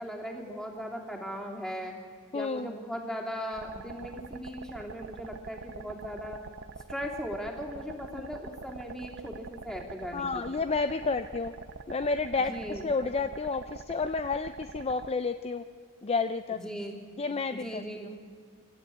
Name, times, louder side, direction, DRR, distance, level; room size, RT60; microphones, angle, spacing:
voice 1, 0.0-2.0 2.3-6.4 6.9-10.3 12.4-12.8 16.5-17.0 17.5-18.1, equal, ahead, 0 dB, 3.1 m, -38 dB
voice 2, 2.3-2.7 8.1-8.3 10.1-11.5 11.9-15.6 16.0-16.6 17.2-17.8, left 4 dB, 30° left, 10 dB, 0.5 m, -30 dB
sound 1, 3.5-15.1, right 4 dB, 55° right, 0.8 m, -45 dB
26.0 x 13.0 x 8.7 m, 2.2 s
head